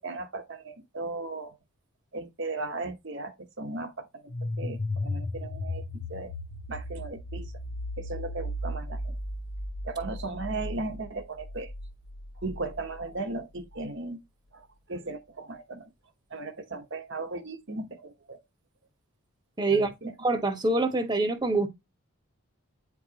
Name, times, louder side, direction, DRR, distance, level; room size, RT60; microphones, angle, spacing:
voice 1, 0.0-1.5 2.1-4.2 4.6-5.8 6.1-6.3 6.7-7.5 8.0-9.2 9.8-11.7 12.4-14.2 14.5-15.9 16.3-18.4 19.7-20.1, right 3 dB, 55° right, 1.1 m, -36 dB
sound 1, 4.3-13.0, left 1 dB, 75° left, 1.0 m, -35 dB
voice 2, 19.6-19.9 20.2-21.7, right 2 dB, 20° right, 1.2 m, -25 dB
9.1 x 4.7 x 2.9 m
head